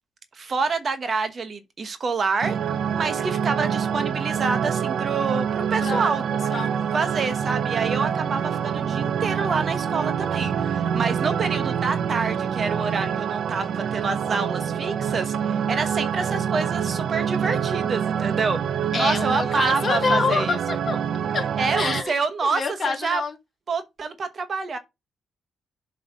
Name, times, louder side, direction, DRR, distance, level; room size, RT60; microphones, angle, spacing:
voice 1, 0.3-2.6 2.9-6.2 6.9-18.6 19.0-20.6 21.6-23.2 23.7-24.8, right 4 dB, 40° right, 1.1 m, -27 dB
sound 1, 2.4-22.0, right 8 dB, 60° right, 0.5 m, -26 dB
voice 2, 18.9-21.0 21.3-21.5 21.8-22.1 22.4-23.4, left 4 dB, 45° left, 1.8 m, -26 dB
8.0 x 3.3 x 5.5 m
cardioid pair, 90°, 0 cm